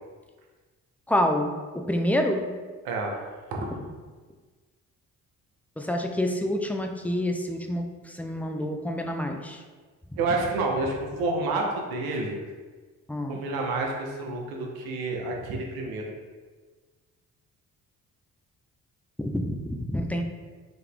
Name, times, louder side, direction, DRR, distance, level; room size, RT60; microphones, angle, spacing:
voice 1, 1.1-2.5 5.8-9.6 13.1-13.4 19.2-20.2, left 1 dB, 5° left, 4 dB, 0.5 m, -28 dB
voice 2, 2.8-3.2 3.5-3.6 10.2-12.4 13.3-16.1, right 3 dB, 85° right, 1 dB, 0.8 m, -29 dB
3.9 x 2.9 x 3.4 m, 1.4 s
supercardioid pair, 55°, 35 cm